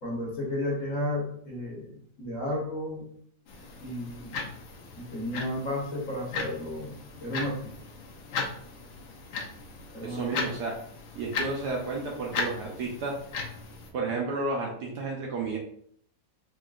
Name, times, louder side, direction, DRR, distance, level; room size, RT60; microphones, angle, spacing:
voice 1, 0.0-1.9 2.2-3.1 3.8-4.4 5.0-6.9 7.2-7.7 9.9-10.2, left 1 dB, 45° left, -4 dB, 1.4 m, -33 dB
sound 1, 3.5-13.9, left 4 dB, 70° left, 1.5 m, -37 dB
voice 2, 10.0-10.7 11.1-13.1 13.9-15.6, right 3 dB, 65° right, -2 dB, 1.1 m, -32 dB
3.8 x 3.8 x 2.4 m, 0.63 s
omnidirectional pair, 2.1 m